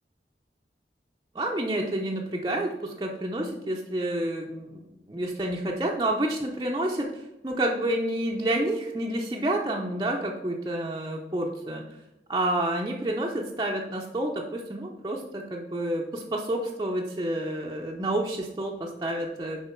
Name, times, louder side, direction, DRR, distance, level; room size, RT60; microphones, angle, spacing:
voice 1, 1.3-2.7 3.0-4.8 5.1-11.8 12.3-19.6, right 1 dB, 20° right, -2 dB, 0.5 m, -29 dB
6.8 x 4.9 x 4.4 m, 0.94 s
head